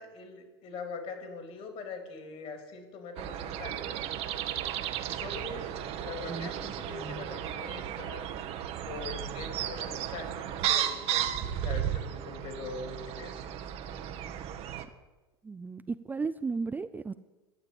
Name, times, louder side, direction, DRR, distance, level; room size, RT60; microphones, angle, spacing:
voice 1, 0.0-4.3 5.0-8.3 8.8-11.3 11.6-13.5, left 4 dB, 50° left, 4 dB, 3.4 m, -42 dB
sound 1, 3.2-14.8, right 10 dB, 50° right, 1.0 m, -34 dB
voice 2, 6.3-7.3 15.4-17.2, right 4 dB, 15° right, 11 dB, 0.4 m, -36 dB
12.0 x 7.4 x 8.6 m, 1.2 s
hypercardioid pair, 95°, 13 cm